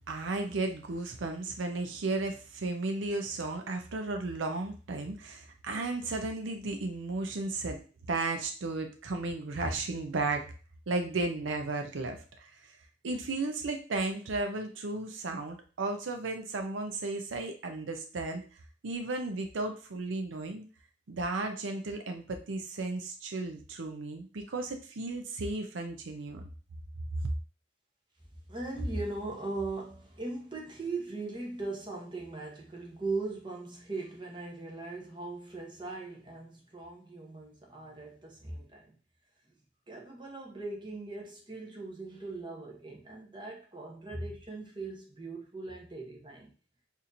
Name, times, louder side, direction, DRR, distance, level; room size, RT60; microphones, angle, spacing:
voice 1, 0.1-7.8 8.1-10.4 10.9-12.7 13.0-18.4 18.8-20.7 21.1-26.4, right 3 dB, 80° right, 4 dB, 0.5 m, -34 dB
voice 2, 28.5-38.9 39.9-46.5, right 2 dB, 25° right, -1 dB, 0.9 m, -39 dB
4.2 x 2.7 x 2.6 m, 0.37 s
head